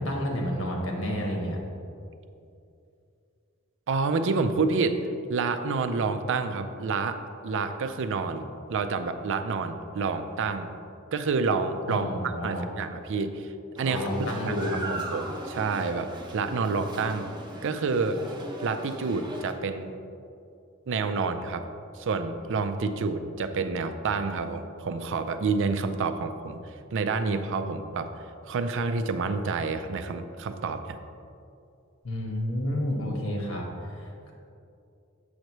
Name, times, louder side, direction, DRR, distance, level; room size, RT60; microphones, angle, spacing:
voice 1, 0.0-1.6 11.9-12.6 13.9-14.7 32.0-33.6 33.9-34.3, equal, 75° left, 0 dB, 1.3 m, -30 dB
voice 2, 3.9-5.0 5.3-10.7 11.1-13.5 13.8-14.0 14.5-17.3 17.6-18.2 18.6-19.9 20.9-21.7 22.0-26.6 26.9-28.1 28.4-31.0, right 4 dB, 65° right, 9 dB, 0.4 m, -28 dB
sound 1, 13.8-19.5, right 1 dB, 20° right, 0.8 m, -38 dB
7.9 x 6.5 x 3.1 m, 2.6 s
head